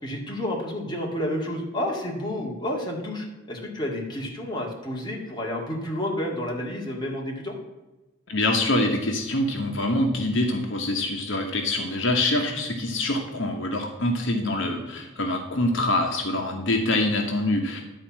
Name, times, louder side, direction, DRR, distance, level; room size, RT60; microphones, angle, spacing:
voice 1, 0.0-7.6, left 1 dB, 20° left, -2 dB, 2.0 m, -30 dB
voice 2, 8.3-17.8, left 1 dB, 70° left, 2 dB, 1.2 m, -25 dB
11.0 x 4.4 x 7.4 m, 1.1 s
head